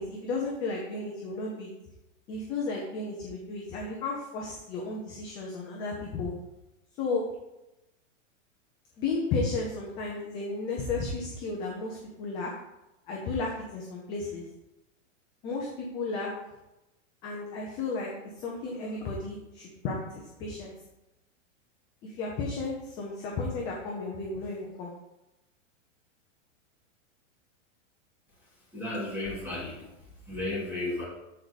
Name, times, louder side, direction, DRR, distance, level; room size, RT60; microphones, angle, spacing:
voice 1, 0.0-1.7 2.3-6.3 7.0-7.2 9.0-12.5 13.1-14.4 15.4-16.3 17.2-20.7 22.0-24.9, left 3 dB, 10° left, -2 dB, 0.5 m, -33 dB
voice 2, 28.7-29.9 30.3-31.0, left 2 dB, 5° right, -7 dB, 2.7 m, -33 dB
13.0 x 4.8 x 4.0 m, 0.96 s
supercardioid pair, 170°, 38 cm